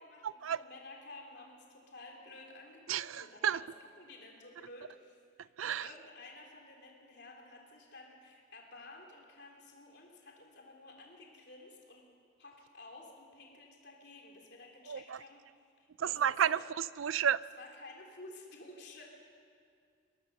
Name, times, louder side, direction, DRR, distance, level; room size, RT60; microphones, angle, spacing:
voice 1, 0.0-12.0 12.4-15.4 15.8-16.6 17.5-19.0, left 2 dB, 55° left, 0 dB, 3.5 m, -53 dB
voice 2, 2.9-3.6 5.6-5.9 14.9-15.2 16.0-17.4, right 8 dB, 80° right, 18 dB, 0.5 m, -31 dB
22.5 x 18.0 x 6.8 m, 2.2 s
head